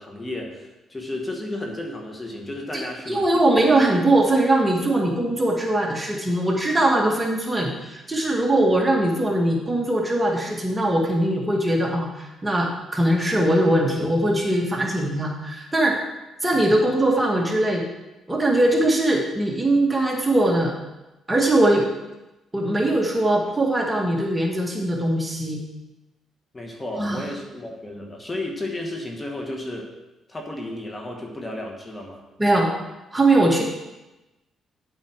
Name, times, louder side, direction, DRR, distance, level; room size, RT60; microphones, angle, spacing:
voice 1, 0.0-3.2 26.5-29.9 30.3-32.2, left 1 dB, 20° left, 1 dB, 2.2 m, -33 dB
voice 2, 3.1-16.0 16.4-17.8 18.3-20.7 21.3-21.9 22.5-25.6 27.0-27.2 32.4-32.7 33.1-33.6, right 1 dB, 15° right, -1 dB, 2.0 m, -21 dB
10.5 x 8.1 x 4.9 m, 1.0 s
cardioid pair, 90°, 0 cm